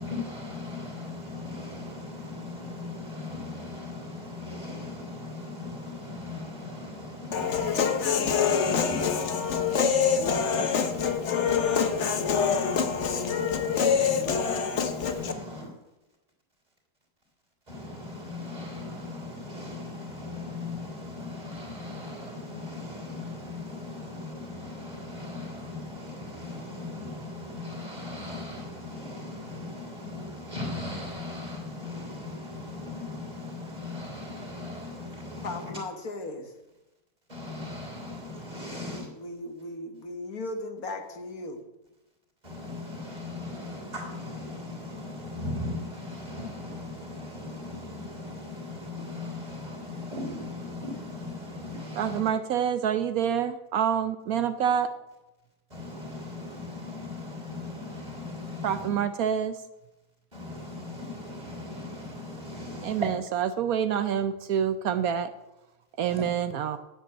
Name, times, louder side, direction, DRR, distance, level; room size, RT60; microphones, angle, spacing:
voice 1, 0.0-15.7 17.7-35.8 37.3-39.1 42.4-52.3 55.7-59.0 60.3-63.2 66.1-66.3, left 2 dB, 25° right, 3.5 m, -38 dB
Human voice, 7.3-15.3, left 6 dB, 55° left, 1.2 m, -25 dB
voice 2, 35.4-36.5 38.7-41.7, left 2 dB, 70° left, 1.9 m, -37 dB
voice 3, 52.0-54.9 58.6-59.6 62.8-65.3 66.0-66.8, right 8 dB, 75° right, 1.1 m, -27 dB
9.4 x 7.7 x 8.9 m
omnidirectional pair, 1.6 m